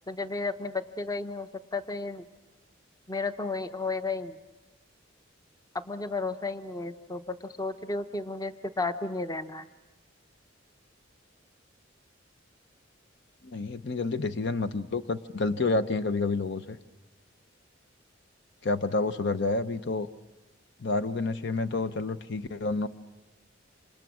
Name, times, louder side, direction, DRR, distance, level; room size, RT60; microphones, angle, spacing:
voice 1, 0.1-2.2 3.1-4.4 5.7-9.7, left 3 dB, 20° left, 9 dB, 0.8 m, -33 dB
voice 2, 13.4-16.8 18.6-20.1 20.8-22.9, left 3 dB, 60° left, 11 dB, 0.8 m, -29 dB
27.5 x 27.0 x 6.2 m, 1.2 s
head